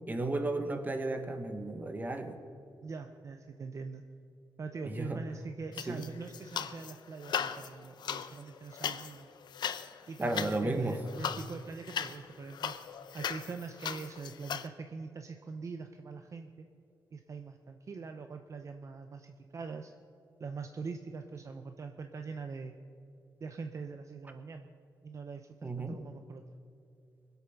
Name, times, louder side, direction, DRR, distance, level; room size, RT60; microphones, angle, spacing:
voice 1, 0.1-2.4 4.8-5.2 5.9-6.1 10.2-11.0 25.6-26.0, right 2 dB, 25° right, 7 dB, 1.3 m, -33 dB
voice 2, 2.8-4.0 4.6-9.3 10.1-12.7 13.1-16.7 17.1-19.9 20.4-22.7 23.4-24.7 25.0-26.4, right 4 dB, 45° right, 6 dB, 0.7 m, -43 dB
sound 1, 5.7-6.9 7.2-14.7, left 8 dB, 85° left, 0.6 m, -38 dB
22.5 x 8.2 x 5.8 m, 2.5 s
wide cardioid pair, 125°, 7 cm